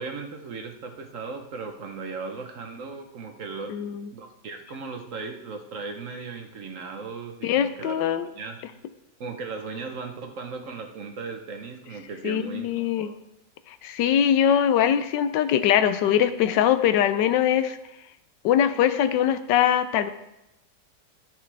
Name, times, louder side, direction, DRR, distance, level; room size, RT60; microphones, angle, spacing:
voice 1, 0.0-8.6 9.2-13.2, right 4 dB, 55° right, 4 dB, 1.0 m, -37 dB
voice 2, 3.7-4.1 7.4-8.3 12.2-13.1 13.7-17.8 18.4-20.1, left 9 dB, 90° left, 12 dB, 1.3 m, -22 dB
13.0 x 6.6 x 3.4 m, 0.90 s
omnidirectional pair, 1.9 m